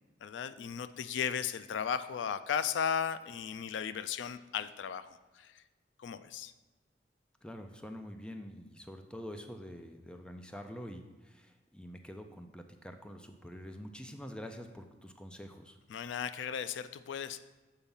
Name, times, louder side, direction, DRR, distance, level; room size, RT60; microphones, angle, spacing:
voice 1, 0.2-5.6 6.0-6.5 15.9-17.4, left 7 dB, 80° left, 13 dB, 0.3 m, -36 dB
voice 2, 7.4-15.8, equal, 5° left, 5 dB, 0.5 m, -46 dB
7.2 x 4.4 x 5.4 m, 1.2 s
head